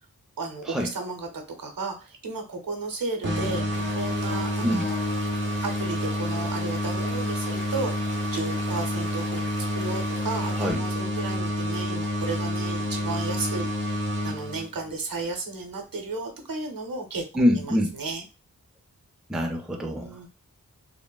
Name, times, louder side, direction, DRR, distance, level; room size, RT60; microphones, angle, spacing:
voice 1, 0.4-3.7 3.9-5.0 5.6-7.9 8.3-17.2 17.5-18.2 20.0-20.3, right 3 dB, 80° right, 3 dB, 0.7 m, -34 dB
sound 1, 3.2-15.0, equal, 35° right, 0.7 m, -29 dB
Stream / Liquid, 3.7-10.7, left 1 dB, 35° left, 0.7 m, -43 dB
Piano, 3.8-6.2, left 8 dB, 75° left, 0.5 m, -39 dB
voice 2, 17.3-17.9 19.3-20.2, equal, ahead, 2 dB, 0.4 m, -25 dB
3.2 x 2.0 x 2.2 m, 0.33 s
wide cardioid pair, 65°, 34 cm